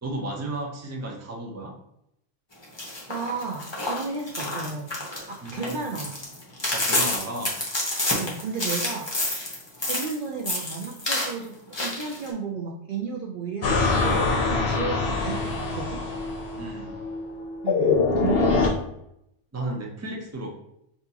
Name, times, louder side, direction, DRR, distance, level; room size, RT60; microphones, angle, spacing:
voice 1, 0.0-1.7 5.4-5.8 6.7-7.6 16.6-17.0 19.5-20.5, right 1 dB, 15° right, 1 dB, 0.6 m, -33 dB
sound 1, 2.6-10.1 10.4-11.3 11.7-12.3, left 1 dB, 25° left, 1.0 m, -28 dB
voice 2, 3.1-4.9 5.3-6.2 8.1-9.5 9.9-11.5 11.8-16.0 17.6-18.8, right 5 dB, 55° right, -1 dB, 0.6 m, -33 dB
sound 2, 13.6-18.7, left 4 dB, 55° left, 1.0 m, -24 dB
5.9 x 2.9 x 2.8 m, 0.77 s
omnidirectional pair, 1.2 m